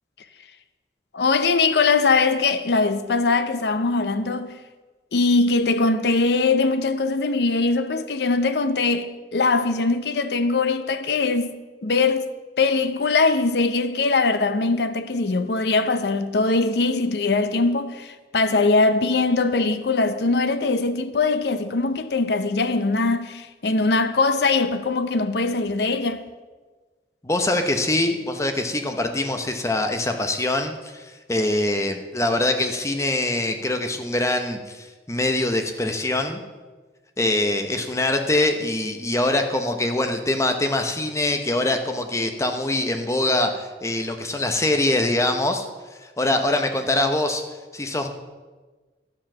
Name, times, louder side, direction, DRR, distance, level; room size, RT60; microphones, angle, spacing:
voice 1, 1.1-4.5 5.1-11.5 11.8-12.3 12.6-26.2, left 3 dB, 65° left, 0.6 m, -21 dB
voice 2, 27.2-36.4 37.2-45.7 46.2-47.4 47.7-48.1, left 2 dB, 15° left, 0.9 m, -23 dB
11.5 x 7.6 x 6.1 m
head